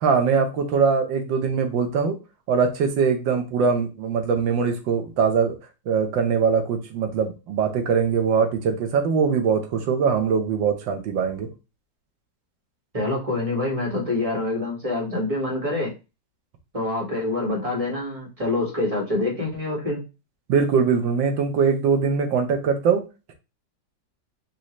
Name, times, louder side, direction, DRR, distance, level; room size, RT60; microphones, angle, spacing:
voice 1, 0.0-2.2 2.5-5.6 5.9-11.5 20.5-23.0, right 6 dB, 90° right, 1.7 m, -22 dB
voice 2, 12.9-15.9 16.7-20.0, left 2 dB, 20° right, 1.4 m, -26 dB
5.3 x 2.9 x 3.1 m
omnidirectional pair, 2.0 m